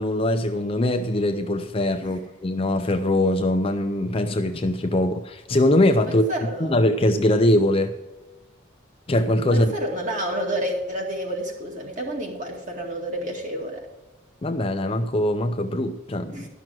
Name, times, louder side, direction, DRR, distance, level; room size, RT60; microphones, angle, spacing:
voice 1, 0.0-6.3 6.6-8.0 9.1-9.7 14.4-16.4, left 1 dB, 25° left, 0.5 m, -22 dB
voice 2, 6.1-6.8 9.5-13.8 16.3-16.5, right 1 dB, 35° right, 2.3 m, -30 dB
12.0 x 6.1 x 7.5 m
head